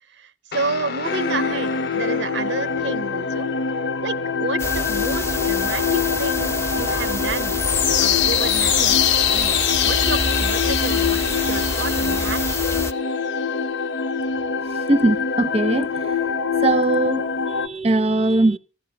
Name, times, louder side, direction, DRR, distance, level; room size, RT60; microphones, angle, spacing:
voice 1, 0.1-3.5 4.0-7.6 8.0-9.0 9.3-12.4, right 4 dB, 70° right, 0.6 m, -30 dB
Guitar, 0.5-9.4, left 4 dB, 55° left, 0.8 m, -36 dB
sound 1, 1.0-17.7, left 6 dB, 85° left, 0.9 m, -23 dB
sound 2, 4.6-12.9, left 2 dB, 15° left, 0.7 m, -27 dB
voice 2, 14.7-16.2 16.6-18.6, right 2 dB, 35° right, 0.6 m, -20 dB
15.5 x 11.5 x 5.9 m
head